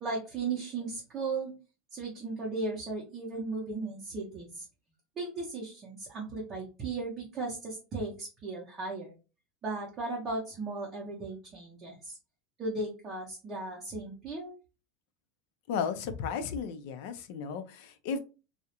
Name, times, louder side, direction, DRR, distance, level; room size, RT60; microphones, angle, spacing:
voice 1, 0.0-1.5 1.9-4.7 5.2-9.1 9.6-12.1 12.6-14.5, right 3 dB, 30° right, -3 dB, 0.6 m, -36 dB
voice 2, 15.7-18.2, left 6 dB, 65° left, 9 dB, 0.4 m, -34 dB
2.3 x 2.0 x 2.8 m, 0.31 s
supercardioid pair, 155°, 0 cm